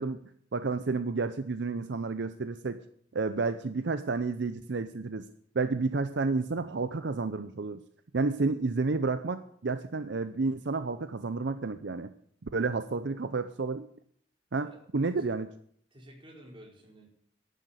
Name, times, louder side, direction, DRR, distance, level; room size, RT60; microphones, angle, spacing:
voice 1, 0.0-2.8 3.1-5.3 5.5-7.8 8.1-12.1 12.4-13.9 14.5-15.5, right 3 dB, 70° right, 11 dB, 0.6 m, -31 dB
voice 2, 15.9-17.1, equal, 30° right, -2 dB, 4.5 m, -52 dB
11.0 x 10.0 x 8.0 m, 0.64 s
head